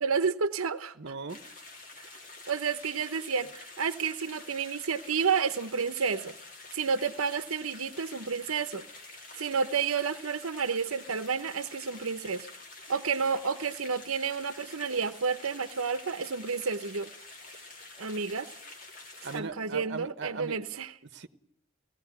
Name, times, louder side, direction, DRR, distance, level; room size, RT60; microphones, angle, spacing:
voice 1, 0.0-1.0 2.5-6.3 6.7-8.8 9.3-12.5 12.9-17.1 18.0-18.5 19.3-20.9, right 5 dB, 85° right, 0.9 m, -30 dB
voice 2, 1.0-1.4 19.2-20.6 21.0-21.3, right 4 dB, 55° right, 1.1 m, -38 dB
sound 1, 1.3-19.4, left 3 dB, 40° left, 2.8 m, -48 dB
18.0 x 15.5 x 9.4 m
head